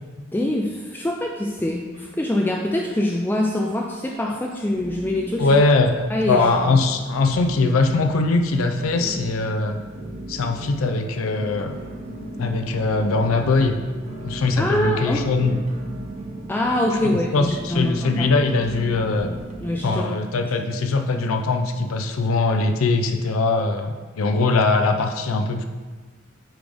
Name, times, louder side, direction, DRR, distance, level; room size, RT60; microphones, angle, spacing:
voice 1, 0.3-5.5 6.1-6.8 14.6-15.3 16.5-18.4 19.2-20.1 20.4-20.5, left 1 dB, 10° left, -1 dB, 0.3 m, -24 dB
sound 1, 1.5-2.5 2.7-3.4 3.9-4.0 4.7-19.9, right 2 dB, 30° right, 0.7 m, -37 dB
voice 2, 5.4-5.9 6.3-9.8 10.3-11.7 12.4-13.8 14.2-15.6 17.0-19.3 19.8-25.6, left 3 dB, 85° left, 5 dB, 0.5 m, -21 dB
8.7 x 3.5 x 3.4 m, 1.4 s
head